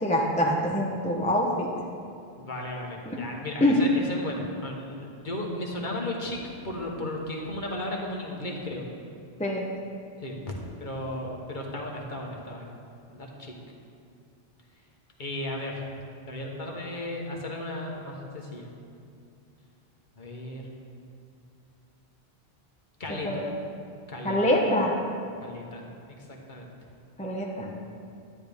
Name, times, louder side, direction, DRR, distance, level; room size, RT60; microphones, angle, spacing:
voice 1, 0.0-1.7 3.1-3.2 3.6-3.8 9.4-9.6 23.2-23.5 24.2-24.9 27.2-27.7, left 1 dB, 10° left, -2 dB, 0.8 m, -25 dB
voice 2, 2.4-6.4 6.6-8.8 10.2-10.5 10.8-12.7 13.1-13.5 15.2-15.8 16.3-18.7 20.2-20.7 23.0-23.5 24.1-24.4 25.4-26.7, left 1 dB, 50° left, -1 dB, 1.4 m, -35 dB
11.5 x 10.5 x 3.5 m, 2.4 s
omnidirectional pair, 1.0 m